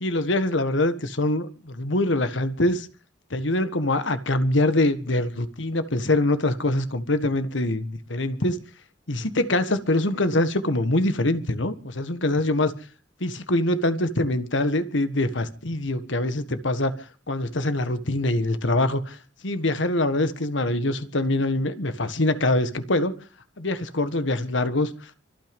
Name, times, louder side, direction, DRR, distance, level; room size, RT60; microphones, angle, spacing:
voice 1, 0.0-2.9 3.3-8.6 9.1-12.7 13.2-19.2 19.4-23.1 23.6-25.1, left 1 dB, 70° left, 11 dB, 1.5 m, -24 dB
25.0 x 9.3 x 5.3 m, 0.38 s
head